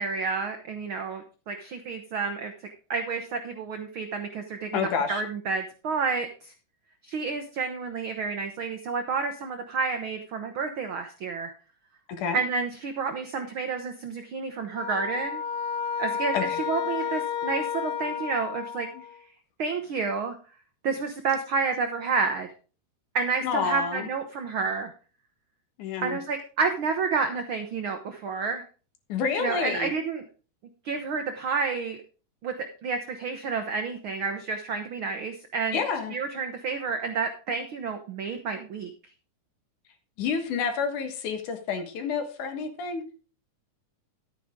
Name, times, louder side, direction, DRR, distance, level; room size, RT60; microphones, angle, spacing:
voice 1, 0.0-6.5 7.0-11.5 12.3-15.4 16.0-16.4 16.7-18.9 19.6-20.3 20.8-22.5 23.1-24.9 26.0-28.6 29.4-30.2 30.8-32.0 32.4-32.5 32.8-35.8 36.1-38.9, right 4 dB, 90° right, 6 dB, 1.1 m, -30 dB
voice 2, 4.7-5.2 12.2-12.4 16.3-16.6 18.9-19.0 23.4-24.1 25.8-26.2 29.1-29.9 35.7-36.1 40.2-43.0, left 5 dB, 70° left, 6 dB, 2.9 m, -29 dB
sound 1, 14.7-19.2, left 8 dB, 85° left, 2.5 m, -31 dB
11.5 x 9.2 x 3.6 m, 0.36 s
omnidirectional pair, 3.8 m